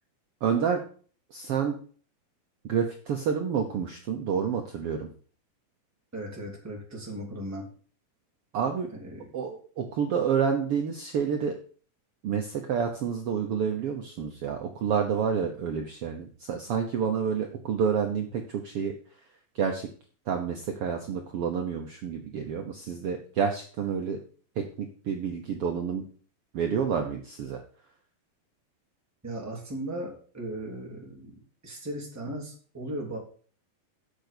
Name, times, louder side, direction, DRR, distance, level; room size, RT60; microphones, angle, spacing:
voice 1, 0.4-0.8 1.3-1.8 2.6-5.1 8.5-8.9 9.3-11.5 12.2-18.9 19.5-19.9 20.3-24.2 24.6-26.0 26.5-27.6, right 7 dB, 75° right, 4 dB, 1.3 m, -29 dB
voice 2, 6.1-7.7 9.0-9.2 29.2-33.2, right 1 dB, 5° right, -2 dB, 2.9 m, -37 dB
8.0 x 7.1 x 6.7 m, 0.43 s
omnidirectional pair, 4.0 m